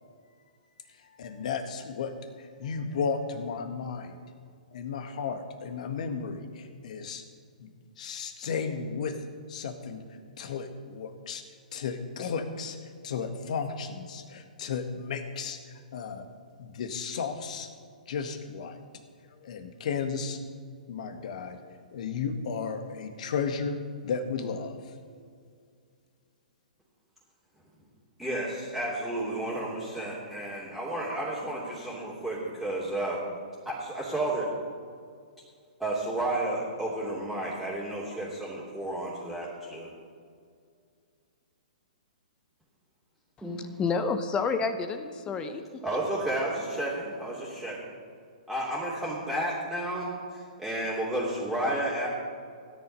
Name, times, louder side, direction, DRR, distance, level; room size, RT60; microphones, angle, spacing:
voice 1, 1.2-4.2 4.7-7.2 7.6-7.7 8.0-9.2 9.5-10.0 10.4-11.4 11.7-12.8 13.0-16.2 16.6-17.7 18.1-18.8 19.4-20.4 20.9-24.8, left 5 dB, 60° left, 8 dB, 1.7 m, -34 dB
voice 2, 28.2-33.2 33.6-34.5 35.8-39.9 43.4-43.6 45.8-47.9 48.5-52.1, right 1 dB, ahead, -7 dB, 2.9 m, -32 dB
voice 3, 43.6-45.6, left 5 dB, 20° left, 10 dB, 0.8 m, -29 dB
16.5 x 10.5 x 5.5 m, 2.2 s
figure-of-eight pair, 120°, 4 cm